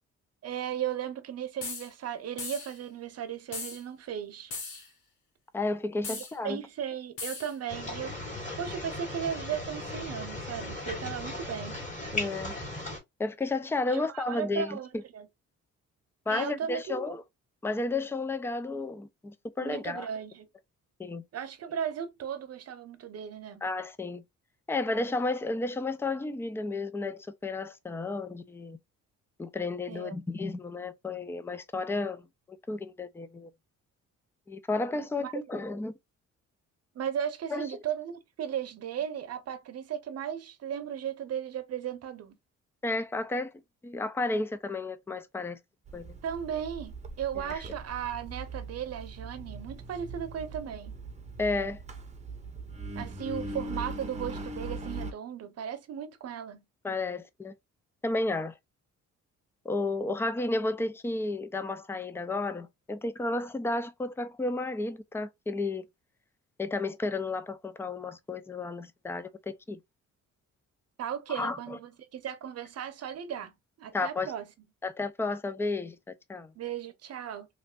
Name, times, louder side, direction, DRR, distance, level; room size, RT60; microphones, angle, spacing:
voice 1, 0.4-4.5 6.1-8.2 8.6-11.8 13.9-15.3 16.3-17.2 19.6-20.5 21.3-23.6 29.9-30.2 35.2-35.3 36.9-42.4 46.2-51.0 52.9-56.6 71.0-73.5 73.8-74.5 76.6-77.5, right 9 dB, 55° right, 0.8 m, -36 dB
sound 1, 1.6-1.9 2.4-2.8 3.5-3.8 4.5-4.9 6.0-6.3 7.2-7.5, left 4 dB, 80° left, 1.4 m, -38 dB
voice 2, 5.5-6.6 12.1-12.6 13.2-15.0 16.3-17.2 17.6-20.1 21.0-21.2 23.6-24.2 24.7-28.8 29.4-33.5 34.5-35.9 37.5-37.7 42.8-43.5 43.8-45.6 45.9-46.2 47.4-47.6 51.4-51.8 56.8-57.5 58.0-58.6 59.6-65.9 66.6-69.8 71.3-71.8 73.9-74.3 74.8-76.5, left 2 dB, 10° left, 0.4 m, -32 dB
sound 2, 7.7-13.0, left 2 dB, 25° left, 1.9 m, -37 dB
Engine, 45.9-55.1, right 2 dB, 25° right, 0.8 m, -40 dB
3.1 x 2.5 x 2.4 m
cardioid pair, 90°, 30 cm